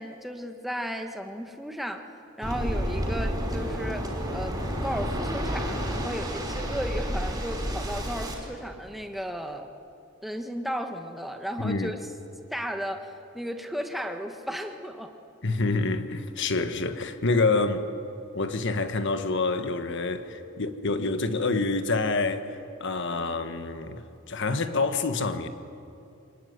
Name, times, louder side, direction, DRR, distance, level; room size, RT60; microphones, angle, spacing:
voice 1, 0.0-2.1 2.4-9.7 10.2-12.0 12.5-15.1, equal, ahead, 1.5 m, -34 dB
Waves surf, 2.4-8.3, equal, 15° right, 5.2 m, -30 dB
voice 2, 11.6-11.9 15.4-17.9 18.3-25.5, left 3 dB, 60° left, 1.4 m, -27 dB
24.5 x 20.5 x 9.6 m
head